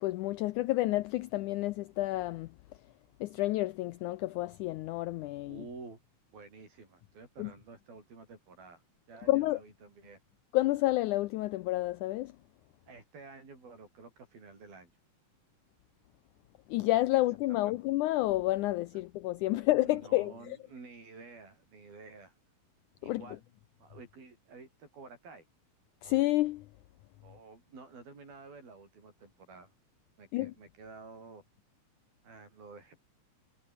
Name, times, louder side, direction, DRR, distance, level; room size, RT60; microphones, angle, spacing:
voice 1, 0.0-2.5 3.2-5.6 7.4-7.5 9.3-9.6 10.5-12.3 16.7-20.6 23.0-23.2 26.0-26.7 30.3-30.5, left 17 dB, 85° left, 1.8 m, -30 dB
voice 2, 5.4-6.0 6.3-8.8 9.1-10.2 12.9-14.9 17.1-17.2 17.5-17.7 19.5-22.4 23.0-23.4 23.8-25.5 27.2-29.7 30.2-31.4 32.2-33.0, right 4 dB, 85° right, 10.0 m, -51 dB
omnidirectional pair, 4.1 m